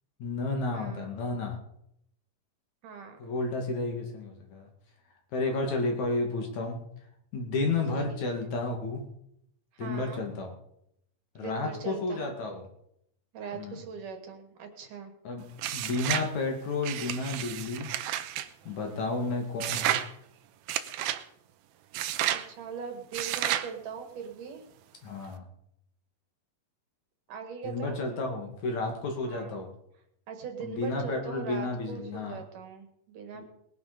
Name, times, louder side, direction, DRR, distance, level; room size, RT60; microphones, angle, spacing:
voice 1, 0.2-1.6 3.2-4.7 5.3-6.8 7.3-9.0 9.8-10.5 11.3-12.6 13.5-13.8 15.2-15.4 15.7-17.9 18.6-20.0 25.0-25.5 27.6-29.7 30.6-32.4 33.3-33.4, left 3 dB, 55° left, 2 dB, 3.3 m, -32 dB
voice 2, 0.7-1.1 2.8-3.2 5.5-5.7 7.9-8.0 8.4-8.5 9.7-10.2 11.4-12.3 13.3-15.1 18.9-19.2 22.3-24.6 27.3-28.0 29.3-29.6 30.3-33.4, right 6 dB, 65° right, 5 dB, 3.2 m, -41 dB
sound 1, 15.6-16.3 16.8-18.5 19.6-20.1 20.7-21.2 21.9-22.5 23.1-23.7, right 12 dB, 85° right, 2.7 m, -31 dB
20.0 x 10.5 x 5.1 m, 0.76 s
omnidirectional pair, 4.3 m